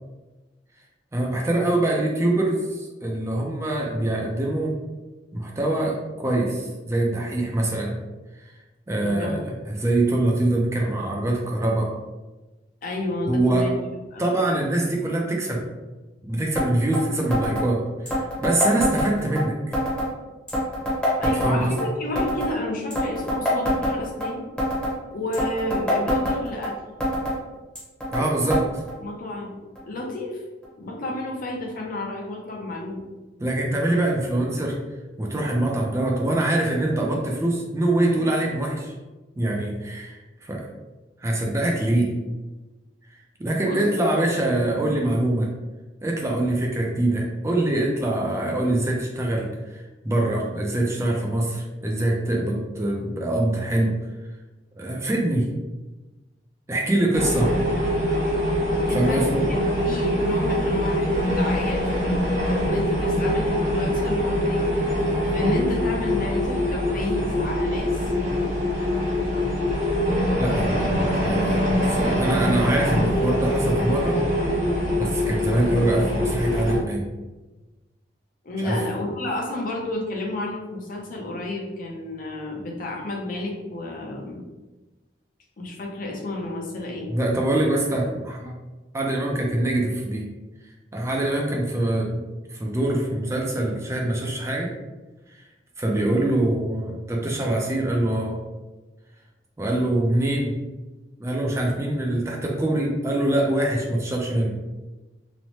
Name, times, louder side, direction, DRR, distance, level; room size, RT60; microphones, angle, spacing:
voice 1, 1.1-4.8 5.3-8.0 8.3-8.5 8.9-11.9 13.3-13.7 14.2-15.7 16.3-19.7 21.2-21.7 28.1-28.7 33.4-34.8 35.2-38.9 39.4-40.7 41.2-42.1 43.4-45.5 46.0-54.0 54.8-55.5 56.7-57.5 58.9-59.4 70.4-74.2 75.0-77.1 78.6-78.8 87.1-88.6 88.9-90.3 90.9-92.2 92.5-94.7 95.8-98.4 99.6-100.5 101.2-104.6, right 1 dB, 15° right, -1 dB, 0.4 m, -24 dB
voice 2, 9.0-9.3 12.8-13.8 14.1-14.3 21.2-24.4 25.1-26.7 29.0-29.5 29.9-30.4 30.8-33.0 43.6-43.8 58.9-61.8 62.5-64.7 65.3-68.0 78.4-84.4 85.6-87.1, left 2 dB, 50° left, -1 dB, 0.6 m, -31 dB
sound 1, 16.6-16.7 16.9-17.0 17.3-17.7 18.1-19.4 19.7-20.1 20.5-21.9 22.2-22.5 22.9-24.3 24.6-25.0 25.3-26.7 27.0-27.4 27.8-28.2 28.5-28.6 28.9-29.0 29.8-29.9 30.6-30.7, left 1 dB, 5° left, 0.8 m, -24 dB
sound 2, 57.1-76.8, equal, 40° right, 0.8 m, -23 dB
3.0 x 2.0 x 2.7 m, 1.2 s
head